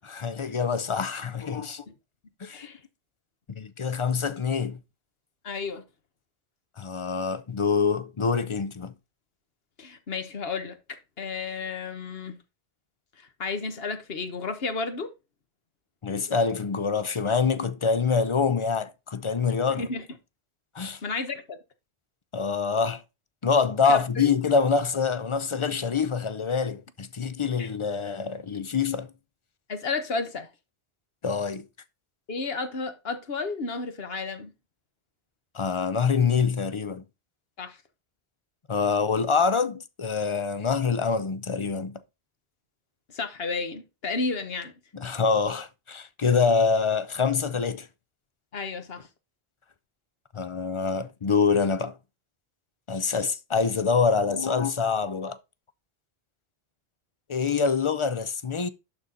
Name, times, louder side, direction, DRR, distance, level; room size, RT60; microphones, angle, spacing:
voice 1, 0.0-1.8 2.4-2.6 3.5-4.8 6.8-8.9 16.0-19.9 20.7-21.0 22.3-23.0 23.4-29.1 31.2-31.6 35.5-37.0 38.7-41.9 44.9-47.9 50.3-52.0 52.9-55.4 57.3-58.7, left 5 dB, 35° left, 0.5 m, -25 dB
voice 2, 2.5-2.8 5.4-5.8 9.8-12.4 13.2-15.1 19.5-20.0 21.0-21.6 23.9-24.3 27.6-27.7 29.7-30.5 32.3-34.5 37.6-37.8 43.1-44.7 48.5-49.1, left 4 dB, 70° left, 1.4 m, -32 dB
11.5 x 4.2 x 3.8 m
omnidirectional pair, 1.1 m